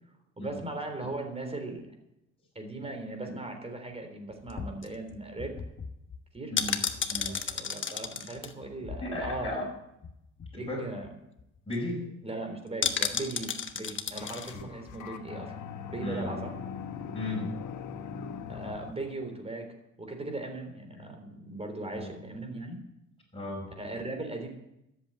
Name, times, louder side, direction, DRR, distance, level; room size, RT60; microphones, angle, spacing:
voice 1, 0.4-1.8 2.6-5.5 6.3-6.5 7.1-9.6 10.5-11.1 12.2-15.5 15.9-16.6 18.5-19.7 20.0-22.8 23.8-24.5, right 2 dB, 20° right, 4 dB, 3.6 m, -38 dB
sound 1, 4.5-9.7 10.0-10.1 10.4-10.7 11.0-11.1 11.4-11.8 12.8-14.5 14.9-15.0, left 6 dB, 40° left, 1.2 m, -34 dB
voice 2, 6.5-6.8 7.1-7.4 9.0-9.6 10.5-10.9 11.7-12.1 14.5-14.6 16.0-16.4 17.1-17.6 21.9-22.1 23.3-23.6, left 1 dB, 20° left, -4 dB, 5.7 m, -35 dB
sound 2, 14.1-19.1, left 7 dB, 75° left, 1.3 m, -41 dB
13.0 x 8.0 x 8.8 m, 0.85 s
cardioid pair, 90°, 30 cm